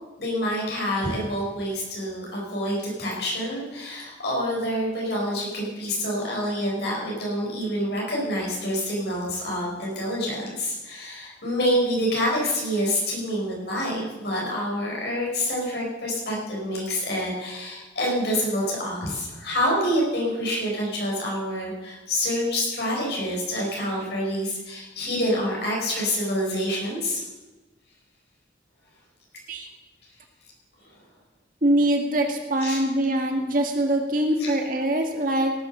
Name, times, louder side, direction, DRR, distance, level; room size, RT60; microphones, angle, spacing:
voice 1, 0.2-27.2 32.6-32.8 34.4-34.5, equal, 65° left, -4 dB, 5.5 m, -27 dB
voice 2, 31.6-35.5, right 1 dB, 50° right, 3 dB, 1.8 m, -23 dB
17.5 x 7.5 x 6.6 m, 1.2 s
head